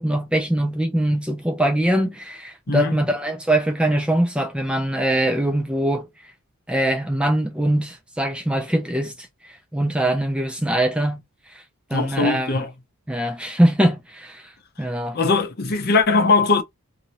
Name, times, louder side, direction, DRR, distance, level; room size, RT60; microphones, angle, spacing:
voice 1, 0.0-6.1 6.7-9.1 9.7-11.2 11.9-12.6 13.1-14.5 14.8-15.2, right 1 dB, 5° right, 0.4 m, -22 dB
voice 2, 11.9-12.7 15.1-16.6, left 3 dB, 45° left, 0.6 m, -20 dB
2.8 x 2.6 x 2.8 m
head